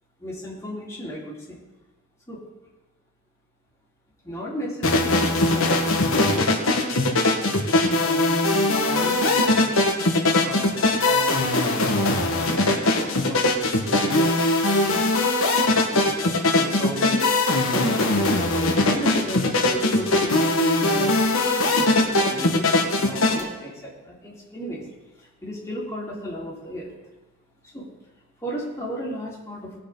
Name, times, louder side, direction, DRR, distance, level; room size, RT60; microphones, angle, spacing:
voice 1, 0.2-1.6 2.3-2.4 4.2-9.7 10.4-13.4 13.9-15.1 15.9-17.3 17.7-21.3 21.6-24.8 25.2-26.9 27.7-27.9 28.4-29.8, equal, 15° left, -6 dB, 3.2 m, -35 dB
sound 1, 4.8-23.4, left 2 dB, 75° left, 1.6 m, -21 dB
19.5 x 6.5 x 4.0 m, 1.1 s
head